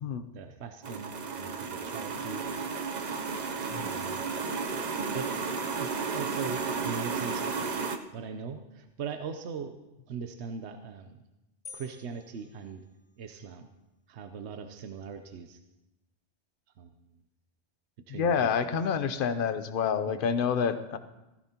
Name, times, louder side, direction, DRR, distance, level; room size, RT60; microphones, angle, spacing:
voice 1, 0.3-2.5 3.0-3.2 3.7-4.3 4.9-5.3 5.7-7.5 8.1-9.8 10.1-11.2 11.7-12.8 13.2-13.7 14.1-15.6 16.8-17.2 18.1-18.8 20.0-20.2, right 6 dB, 70° right, 7 dB, 1.0 m, -40 dB
sound 1, 0.8-8.0, right 5 dB, 45° right, 0.7 m, -33 dB
sound 2, 11.6-13.4, left 5 dB, 30° left, 0.5 m, -51 dB
voice 2, 18.1-21.0, left 6 dB, 55° left, 10 dB, 0.9 m, -28 dB
16.0 x 14.0 x 2.9 m, 0.97 s
omnidirectional pair, 1.2 m